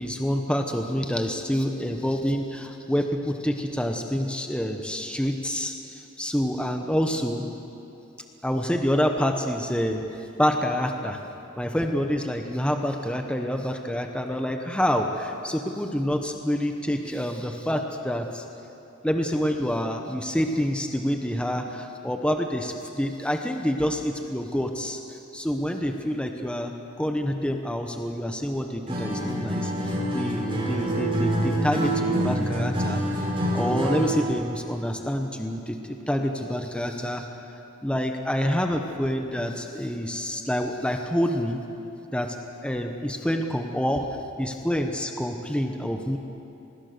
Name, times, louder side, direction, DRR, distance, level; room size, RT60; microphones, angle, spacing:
voice 1, 0.0-7.5 8.4-11.2 11.6-18.4 19.0-33.0 33.5-37.3 37.8-41.6 42.1-42.4 42.6-44.1 44.4-46.2, equal, 5° left, 4 dB, 1.1 m, -27 dB
Acoustic guitar, 28.9-34.3, right 1 dB, 25° right, 5.7 m, -26 dB
25.0 x 20.0 x 6.8 m, 2.8 s
head